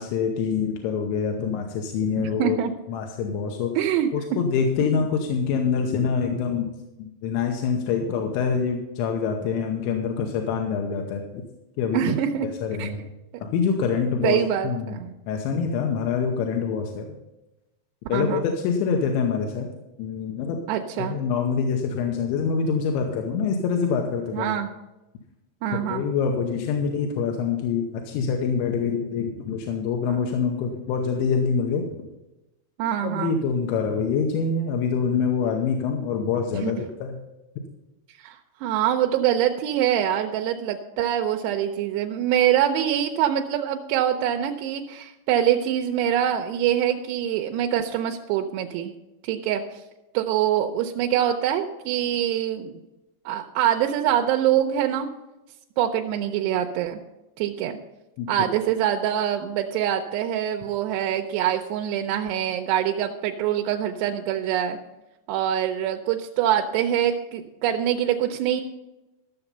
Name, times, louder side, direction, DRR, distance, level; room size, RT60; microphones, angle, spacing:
voice 1, 0.0-2.6 2.9-3.7 4.1-6.7 7.0-11.4 11.8-12.0 12.6-13.1 13.4-15.0 15.3-17.1 18.1-19.7 20.0-20.6 21.0-24.5 25.9-31.8 33.0-37.2 58.2-58.3, left 6 dB, 85° left, 3 dB, 3.2 m, -25 dB
voice 2, 2.2-2.7 3.8-4.1 4.8-5.0 11.9-12.5 12.8-12.9 14.2-15.1 18.1-18.4 20.7-21.2 24.3-24.7 25.6-26.0 32.8-33.4 36.6-36.7 38.2-48.9 49.2-49.8 50.1-52.8 53.3-55.1 55.8-57.0 57.4-57.8 58.3-64.8 65.3-68.6, right 10 dB, 80° right, 3 dB, 2.6 m, -24 dB
13.0 x 6.9 x 5.5 m, 0.99 s
omnidirectional pair, 5.2 m